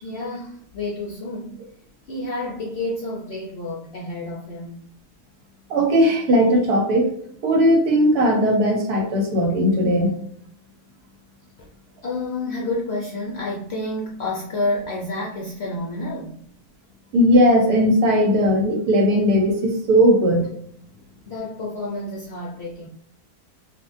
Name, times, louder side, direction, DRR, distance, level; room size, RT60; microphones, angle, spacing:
voice 1, 0.0-1.7 2.1-4.9 11.6-11.7 12.0-16.4 21.3-22.9, left 2 dB, 60° left, -3 dB, 0.7 m, -29 dB
voice 2, 5.7-7.1 7.4-10.1 17.1-20.5, equal, 75° right, 1 dB, 1.4 m, -18 dB
4.2 x 2.5 x 2.5 m, 0.64 s
omnidirectional pair, 1.7 m